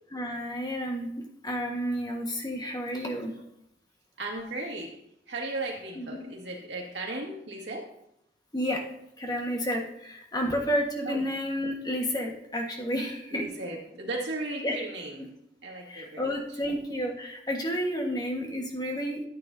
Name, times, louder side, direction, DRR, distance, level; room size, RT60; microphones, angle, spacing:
voice 1, 0.1-3.3 5.9-6.3 8.5-8.8 9.2-13.5 14.6-14.8 15.9-19.2, equal, 25° left, 1 dB, 1.5 m, -31 dB
voice 2, 4.2-4.9 5.3-7.9 11.0-11.2 13.3-15.3 15.6-16.3, right 2 dB, 80° right, -2 dB, 2.2 m, -36 dB
13.0 x 8.9 x 2.7 m, 0.78 s
head